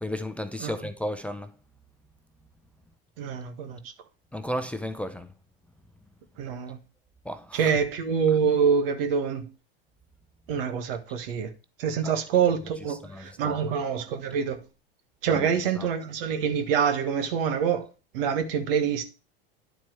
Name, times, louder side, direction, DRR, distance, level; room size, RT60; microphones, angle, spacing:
voice 1, 0.0-1.5 4.3-5.3 7.3-7.6 12.0-12.1 13.1-13.6 15.3-15.4 15.8-15.9, equal, 5° left, 0.6 m, -33 dB
voice 2, 3.2-3.9 6.4-6.8 7.5-9.5 10.5-11.5 11.8-14.6 15.2-19.0, right 7 dB, 70° right, 1.6 m, -26 dB
10.5 x 4.3 x 4.6 m
hypercardioid pair, 90°, 30 cm